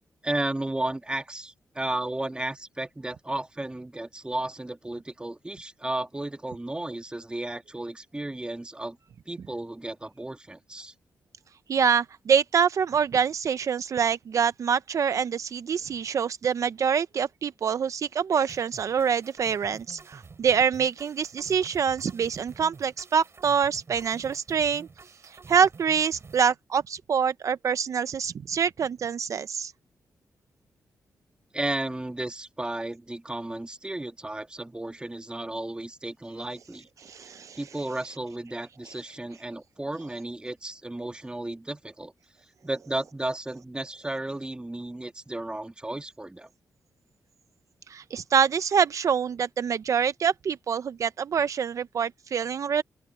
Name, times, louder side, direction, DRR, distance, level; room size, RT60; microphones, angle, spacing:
voice 1, 0.2-9.0 9.3-10.9 31.5-36.9 37.6-42.1 42.6-46.5, right 1 dB, 15° right, 2.0 m, -33 dB
voice 2, 11.7-24.9 25.2-29.7 37.0-37.6 47.9-52.8, right 7 dB, 65° right, 0.6 m, -25 dB
sound 1, 18.5-26.5, right 4 dB, 50° right, 7.1 m, -49 dB
open air
cardioid pair, 65°, 6 cm